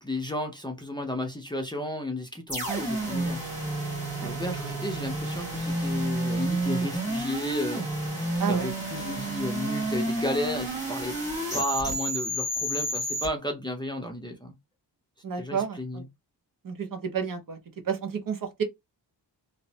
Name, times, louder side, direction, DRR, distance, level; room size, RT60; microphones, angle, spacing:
voice 1, 0.0-3.4 4.2-7.8 8.5-11.2 11.5-14.5 15.4-16.1, left 1 dB, 10° left, 0.5 m, -33 dB
sound 1, 2.5-13.3, right 1 dB, 15° right, 1.5 m, -30 dB
voice 2, 8.4-8.7 15.2-16.1 16.6-17.6 17.8-18.6, right 6 dB, 50° right, 0.7 m, -31 dB
3.0 x 2.0 x 2.7 m
wide cardioid pair, 150°, 43 cm